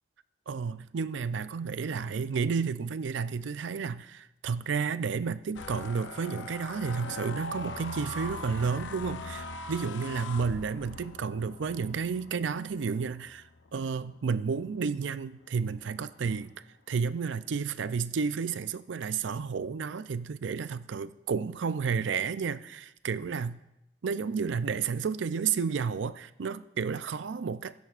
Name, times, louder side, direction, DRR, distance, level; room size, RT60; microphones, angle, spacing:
voice 1, 0.5-13.4 13.7-16.5 16.9-23.6 24.0-27.7, right 5 dB, 75° right, 14 dB, 0.4 m, -31 dB
sound 1, 5.5-14.9 15.4-15.7 16.1-16.5, left 3 dB, 75° left, 0.6 m, -42 dB
20.0 x 10.5 x 2.5 m, 0.90 s
head